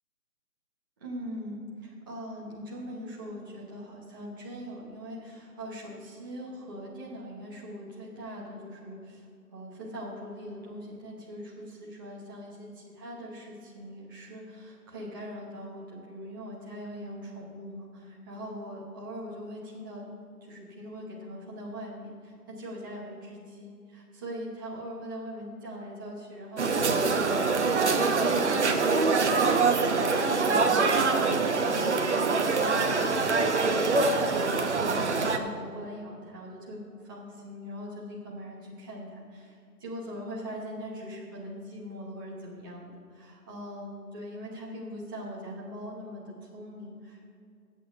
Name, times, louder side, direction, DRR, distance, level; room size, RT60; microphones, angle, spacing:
voice 1, 1.0-20.1 20.4-27.2 27.4-47.3, equal, 15° right, -6 dB, 1.1 m, -41 dB
sound 1, 26.6-35.4, right 4 dB, 45° right, 0.9 m, -24 dB
24.0 x 8.2 x 2.7 m, 2.4 s
figure-of-eight pair, 160°, 47 cm